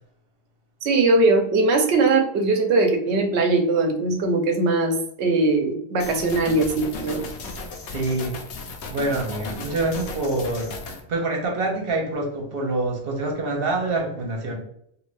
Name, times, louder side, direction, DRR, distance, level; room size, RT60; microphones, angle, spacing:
voice 1, 0.8-7.2, right 3 dB, 85° right, 4 dB, 0.9 m, -20 dB
sound 1, 6.0-11.0, left 3 dB, 80° left, 0.9 m, -35 dB
voice 2, 7.9-8.4 8.6-10.7 11.1-14.6, right 2 dB, 60° right, 0 dB, 1.0 m, -26 dB
2.6 x 2.5 x 3.1 m, 0.69 s
omnidirectional pair, 1.1 m